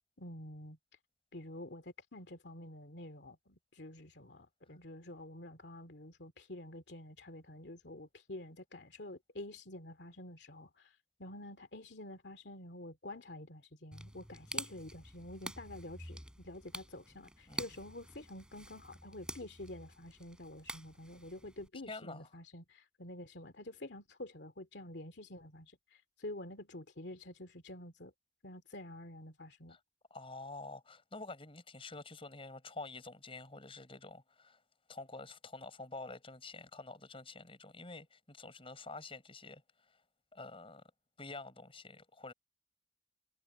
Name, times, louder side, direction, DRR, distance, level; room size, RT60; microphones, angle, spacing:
voice 1, 0.2-0.8 1.3-28.1 28.4-29.8, left 1 dB, 75° left, 2.4 m, -48 dB
sound 1, 13.9-21.7, right 1 dB, 5° right, 4.2 m, -47 dB
voice 2, 21.9-22.3 29.7-29.8 30.1-34.6 34.9-39.6 40.3-40.8 41.2-42.3, left 3 dB, 35° left, 6.5 m, -48 dB
head